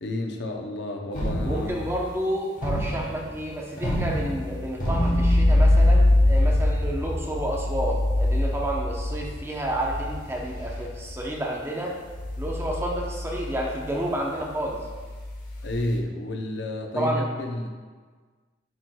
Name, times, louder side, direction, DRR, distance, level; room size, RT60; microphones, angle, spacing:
voice 1, 0.0-1.7 15.6-17.7, left 1 dB, 70° left, 3 dB, 0.7 m, -30 dB
sound 1, 1.1-2.0 2.6-3.2 3.8-11.3 12.1-16.0, left 1 dB, 45° left, 1.2 m, -24 dB
voice 2, 1.4-11.9 12.4-14.8 16.9-17.3, right 1 dB, 15° right, -1 dB, 0.7 m, -30 dB
9.9 x 4.5 x 2.2 m, 1.5 s
head